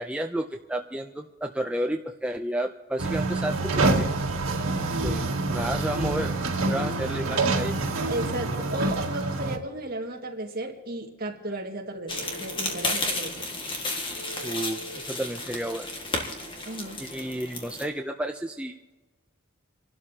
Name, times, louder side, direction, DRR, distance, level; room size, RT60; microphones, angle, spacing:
voice 1, 0.0-4.1 5.0-6.3 6.6-7.7 14.4-15.9 17.0-18.9, right 1 dB, 5° right, 3 dB, 0.5 m, -31 dB
sound 1, 3.0-9.6, right 2 dB, 85° right, 1.8 m, -26 dB
voice 2, 8.1-13.4 16.6-17.0, right 1 dB, 45° right, 1 dB, 1.9 m, -34 dB
Telephone, 8.5-9.0 11.9-12.9 14.2-15.0, right 1 dB, 55° left, 1.9 m, -42 dB
sound 2, 12.1-17.8, left 2 dB, 25° left, 1.7 m, -32 dB
28.0 x 12.0 x 2.8 m, 1.2 s
head